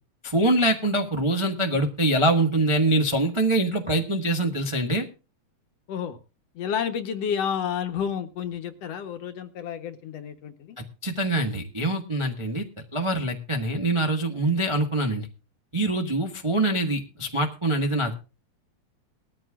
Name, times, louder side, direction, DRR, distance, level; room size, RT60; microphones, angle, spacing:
voice 1, 0.2-5.1 11.0-12.7 12.9-15.3 15.7-18.1, right 1 dB, 25° right, 3 dB, 0.6 m, -24 dB
voice 2, 6.6-10.8, left 8 dB, 65° left, 7 dB, 2.0 m, -30 dB
20.0 x 13.5 x 2.4 m, 0.31 s
omnidirectional pair, 3.3 m